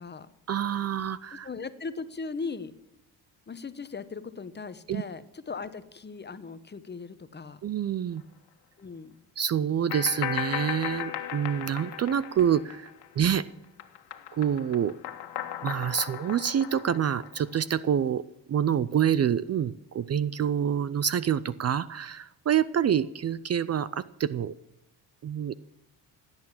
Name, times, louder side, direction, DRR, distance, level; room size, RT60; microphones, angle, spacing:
voice 1, 0.5-1.5 4.9-5.0 7.6-8.2 9.4-12.9 13.2-13.4 14.3-15.0 15.6-18.2 18.5-24.5 25.2-25.5, right 9 dB, 35° right, 17 dB, 0.6 m, -27 dB
voice 2, 1.4-2.7 3.5-7.6 8.8-9.1, left 4 dB, 25° left, 13 dB, 1.1 m, -38 dB
sound 1, 9.9-13.3 13.6-17.6, left 11 dB, 70° left, 1.7 m, -36 dB
16.5 x 9.0 x 7.3 m, 0.89 s
cardioid pair, 90°, 42 cm